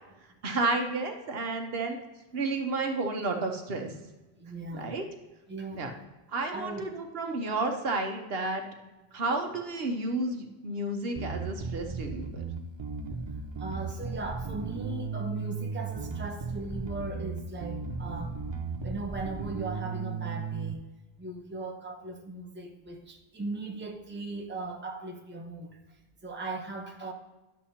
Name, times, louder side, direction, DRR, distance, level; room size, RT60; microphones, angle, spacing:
voice 1, 0.4-2.0 2.3-3.9 4.7-5.0 5.7-5.9 6.3-8.7 9.1-12.4, right 2 dB, 70° right, 4 dB, 1.1 m, -31 dB
voice 2, 4.4-4.9 5.5-5.9 6.5-6.8 13.3-18.4 18.8-20.9 21.2-27.1, right 2 dB, 10° right, 2 dB, 0.8 m, -38 dB
Bass guitar, 11.2-20.7, right 5 dB, 40° right, 0.4 m, -36 dB
11.5 x 7.4 x 2.8 m, 1.1 s
omnidirectional pair, 1.1 m